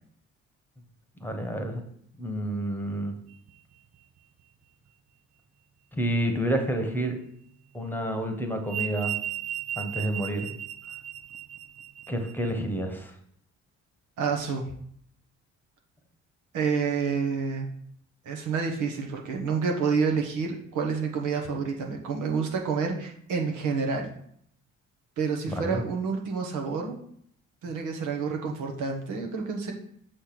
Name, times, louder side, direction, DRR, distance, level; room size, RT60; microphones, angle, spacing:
voice 1, 1.2-1.8 2.2-3.1 5.9-7.2 7.7-9.1 9.8-10.5 12.1-13.1 25.5-25.8, right 1 dB, 5° left, 4 dB, 1.1 m, -29 dB
sound 1, 3.3-3.7 7.8-12.5, right 11 dB, 60° right, 0.6 m, -36 dB
voice 2, 14.2-14.6 16.5-17.7 18.2-24.1 25.2-26.9 27.6-29.7, right 5 dB, 85° right, 2 dB, 1.2 m, -28 dB
6.4 x 3.3 x 5.9 m, 0.66 s
cardioid pair, 90°, 30 cm